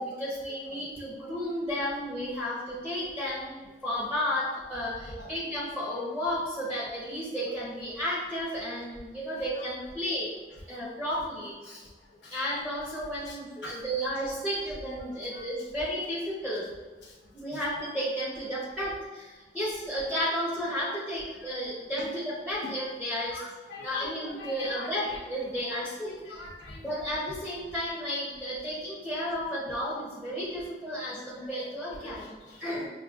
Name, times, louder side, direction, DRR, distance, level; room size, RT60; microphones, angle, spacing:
voice 1, 0.0-3.6 3.8-10.3 10.7-11.9 12.3-16.7 17.3-23.4 23.8-26.4 26.8-32.3 32.6-32.9, equal, 5° left, -7 dB, 0.7 m, -33 dB
voice 2, 23.3-24.9 25.7-26.9 31.3-31.4 32.0-32.7, left 1 dB, 85° left, -4 dB, 0.9 m, -43 dB
6.1 x 2.4 x 2.3 m, 1.3 s
head